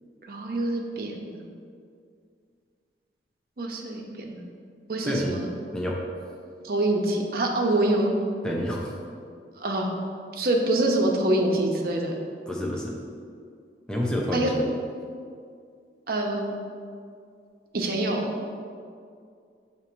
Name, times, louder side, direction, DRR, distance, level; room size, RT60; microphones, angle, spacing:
voice 1, 0.3-1.4 3.6-4.5 4.9-5.5 6.6-8.1 9.6-9.9 10.3-12.1 14.3-14.5 16.1-16.5 17.7-18.2, right 1 dB, 55° right, 1 dB, 0.7 m, -25 dB
voice 2, 5.0-5.4 5.7-6.0 8.4-8.9 12.5-13.0 13.9-14.7, equal, 5° left, -2 dB, 0.6 m, -28 dB
7.1 x 2.9 x 4.5 m, 2.3 s
head